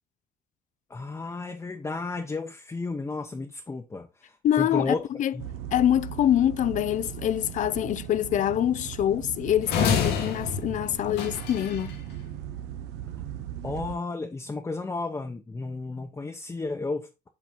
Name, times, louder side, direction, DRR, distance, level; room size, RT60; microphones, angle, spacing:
voice 1, 0.9-5.1 5.3-5.5 13.6-17.1, left 3 dB, 15° left, 0.8 m, -33 dB
voice 2, 4.4-5.3 5.7-12.0, left 11 dB, 50° left, 0.4 m, -25 dB
sound 1, 5.4-14.0, right 11 dB, 90° right, 0.7 m, -38 dB
sound 2, 9.7-11.9, left 7 dB, 85° left, 1.3 m, -28 dB
7.5 x 4.0 x 3.7 m
cardioid pair, 110°, 17 cm